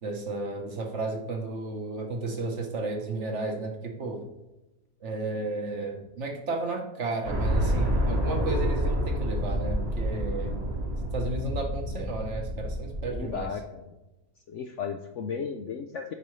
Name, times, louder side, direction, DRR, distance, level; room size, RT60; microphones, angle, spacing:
voice 1, 0.0-4.3 5.0-10.6 11.1-13.5, right 3 dB, 50° right, 3 dB, 1.1 m, -33 dB
sound 1, 7.2-13.5, equal, 30° right, 1.0 m, -28 dB
voice 2, 13.1-13.9 14.5-16.1, left 6 dB, 65° left, 5 dB, 0.7 m, -35 dB
8.2 x 5.3 x 3.1 m, 1.0 s
omnidirectional pair, 1.7 m